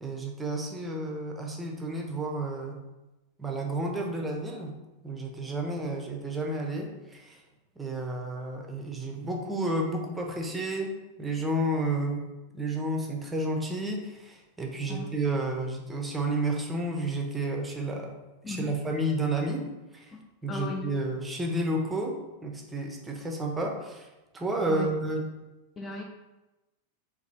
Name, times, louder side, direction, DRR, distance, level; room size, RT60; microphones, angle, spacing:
voice 1, 0.0-2.8 3.4-7.4 7.8-18.2 18.5-19.7 19.9-20.1 20.4-24.1 24.3-25.2, right 1 dB, 10° right, 1 dB, 0.7 m, -31 dB
voice 2, 20.5-20.8 24.6-24.9 25.8-26.0, left 3 dB, 20° left, 1 dB, 0.4 m, -36 dB
4.0 x 2.6 x 4.0 m, 1.0 s
figure-of-eight pair, 90°, 0 cm